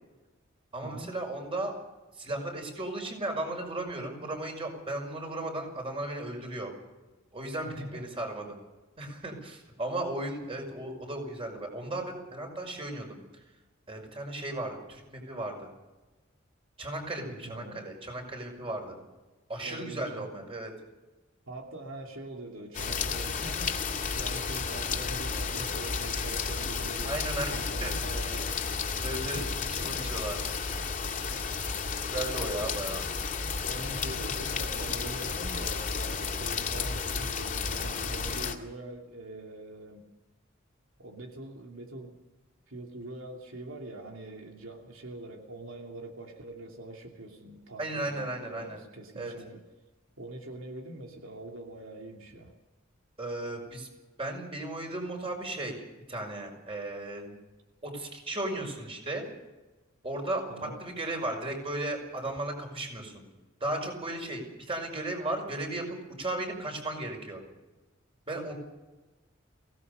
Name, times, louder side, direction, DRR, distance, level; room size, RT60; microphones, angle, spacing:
voice 1, 0.7-1.7 2.1-6.7 7.3-8.6 9.0-13.2 13.9-15.7 16.8-19.0 19.5-20.7 27.0-27.5 27.8-27.9 29.0-29.4 29.7-30.5 32.0-33.1 47.8-48.8 49.2-49.3 53.2-53.9 54.2-57.3 57.8-59.3 60.0-60.4 60.8-63.2 63.6-67.4 68.3-68.5, right 1 dB, 30° right, 3 dB, 5.5 m, -35 dB
voice 2, 7.6-8.1 17.4-17.8 19.6-20.3 21.5-28.9 29.2-30.1 32.2-32.8 33.2-40.1 41.0-42.1 42.7-49.6 50.2-52.5 60.5-60.8, right 2 dB, 90° right, 2 dB, 2.7 m, -43 dB
sound 1, 22.7-38.5, left 5 dB, 40° left, 2.4 m, -32 dB
23.5 x 17.5 x 6.8 m, 1.1 s
head